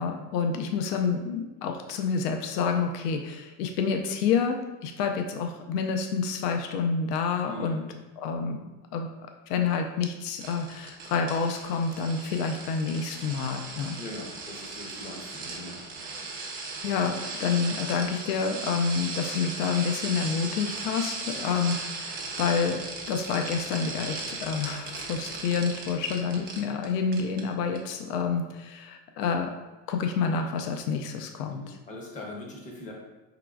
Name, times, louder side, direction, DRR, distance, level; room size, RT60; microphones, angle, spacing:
voice 1, 0.0-7.8 8.2-8.6 8.9-9.1 9.5-13.9 16.8-22.8 23.1-29.5 29.9-31.8, left 5 dB, 70° left, 4 dB, 0.6 m, -28 dB
sound 1, 10.4-26.9 27.1-27.4 27.8-27.9, right 3 dB, 20° right, 0.4 m, -37 dB
voice 2, 14.0-15.8 21.2-21.5 27.1-27.3 31.5-32.9, left 1 dB, 15° left, -1 dB, 0.7 m, -41 dB
4.4 x 3.8 x 2.3 m, 1.1 s
supercardioid pair, 130°, 49 cm